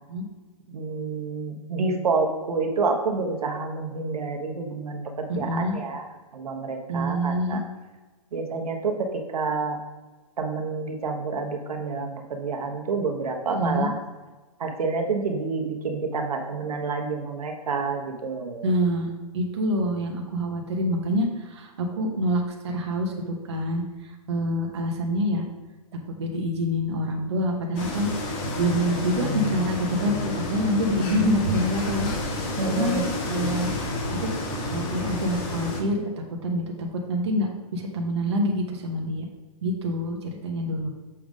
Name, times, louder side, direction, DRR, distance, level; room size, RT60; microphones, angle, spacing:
voice 1, 0.7-7.6 8.3-9.8 10.4-14.0 14.6-18.7 32.6-33.1, right 4 dB, 80° right, 3 dB, 1.2 m, -28 dB
voice 2, 5.3-5.8 6.9-7.6 13.6-13.9 18.6-25.4 26.2-28.1 28.6-33.7 34.2-34.3 34.6-39.3 39.6-40.9, equal, 45° right, 1 dB, 1.0 m, -26 dB
sound 1, 27.7-35.8, left 2 dB, 15° left, 0.5 m, -30 dB
6.8 x 3.7 x 5.0 m, 1.2 s
hypercardioid pair, 175°, 19 cm